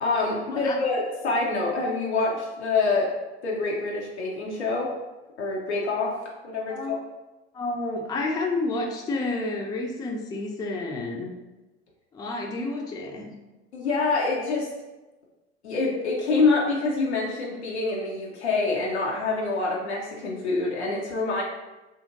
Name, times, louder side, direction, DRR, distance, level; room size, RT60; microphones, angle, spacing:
voice 1, 0.0-3.1 3.4-4.9 5.4-6.2 6.4-7.0 13.7-14.7 15.6-21.4, left 3 dB, 90° left, -3 dB, 0.5 m, -26 dB
voice 2, 7.5-11.3 12.1-13.4, left 2 dB, 10° left, 1 dB, 0.3 m, -30 dB
2.7 x 2.5 x 2.5 m, 1.1 s
figure-of-eight pair, 65°, 33 cm